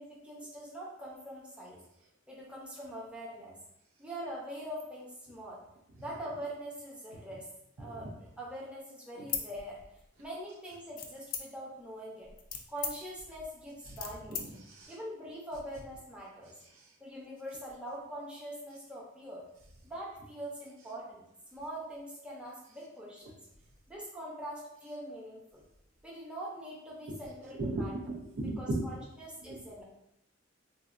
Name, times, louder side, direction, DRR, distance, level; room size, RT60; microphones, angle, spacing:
voice 1, 0.0-1.8 2.3-3.5 4.0-5.6 6.0-7.5 7.8-9.8 10.2-12.3 12.7-14.4 14.9-16.6 17.0-19.5 19.8-21.2 21.5-23.4 23.9-25.6 26.0-27.9 28.4-29.8, right 1 dB, 5° right, -5 dB, 0.6 m, -43 dB
sound 1, 9.2-10.3 11.0-11.8 12.2-14.5, left 7 dB, 45° left, 0.4 m, -39 dB
voice 2, 14.3-14.9 27.1-27.2 27.6-28.9 29.5-29.6, right 2 dB, 85° right, -1 dB, 0.6 m, -36 dB
4.0 x 2.2 x 2.4 m, 0.81 s
head